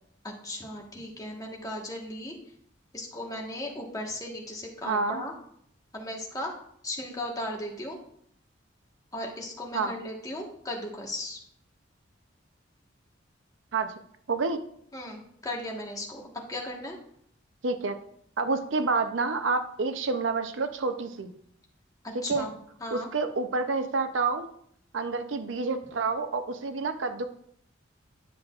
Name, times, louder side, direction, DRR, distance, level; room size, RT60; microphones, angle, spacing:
voice 1, 0.2-2.4 2.9-5.3 5.9-6.5 6.8-8.0 9.1-11.4 14.9-17.0 22.2-23.1, left 1 dB, 20° left, -1 dB, 1.3 m, -36 dB
voice 2, 4.8-5.2 9.7-10.0 13.7-13.9 14.3-14.6 17.6-17.9 18.4-21.3 22.3-22.5 22.9-24.5 24.9-27.2, right 4 dB, 80° right, 8 dB, 0.6 m, -28 dB
10.0 x 6.5 x 2.4 m, 0.67 s
head